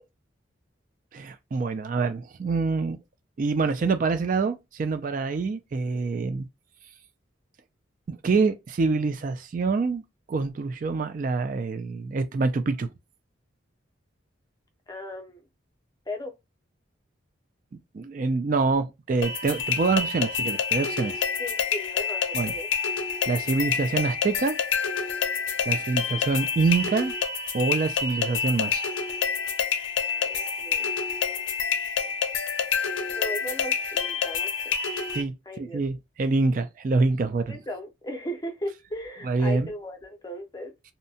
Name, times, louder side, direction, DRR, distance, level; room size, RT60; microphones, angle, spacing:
voice 1, 1.1-3.0 3.4-6.5 8.1-12.9 17.9-21.2 22.3-22.5 23.3-24.6 25.7-27.1 27.5-28.9 35.1-37.6 39.2-39.7, right 4 dB, 40° right, 0.3 m, -26 dB
voice 2, 14.9-15.4 16.1-16.3 21.4-22.7 30.2-30.9 33.1-34.7 35.5-35.8 37.5-40.7, equal, 20° left, 0.5 m, -37 dB
sound 1, 19.2-35.2, left 6 dB, 75° left, 0.5 m, -28 dB
2.7 x 2.1 x 2.7 m
head